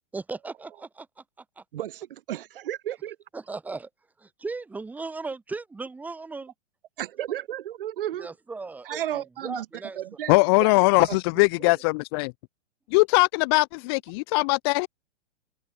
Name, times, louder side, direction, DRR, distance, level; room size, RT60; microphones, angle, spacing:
voice 1, 0.1-1.2 3.3-3.9 4.2-6.5 8.2-10.0, right 3 dB, 5° right, 3.1 m, -37 dB
voice 2, 2.3-3.1 7.0-8.3 8.8-9.7 10.0-10.7 11.1-11.2 11.6-11.7, right 12 dB, 50° right, 2.6 m, -33 dB
voice 3, 10.3-12.3 12.9-14.9, left 29 dB, 20° left, 1.0 m, -21 dB
hypercardioid pair, 170°, 36 cm